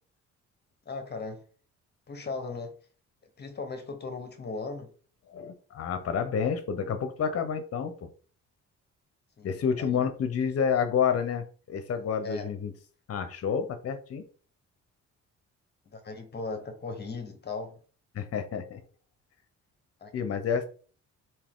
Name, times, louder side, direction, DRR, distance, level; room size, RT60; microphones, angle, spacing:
voice 1, 0.9-1.4 2.1-2.8 3.4-4.9 9.4-10.0 12.2-12.5 15.9-17.8 20.0-20.3, left 4 dB, 35° left, 7 dB, 1.1 m, -38 dB
voice 2, 5.3-8.1 9.4-12.7 13.1-14.2 18.1-18.8 20.1-20.7, left 7 dB, 50° left, 9 dB, 0.8 m, -29 dB
3.6 x 2.8 x 3.6 m, 0.40 s
cardioid pair, 90°, 30 cm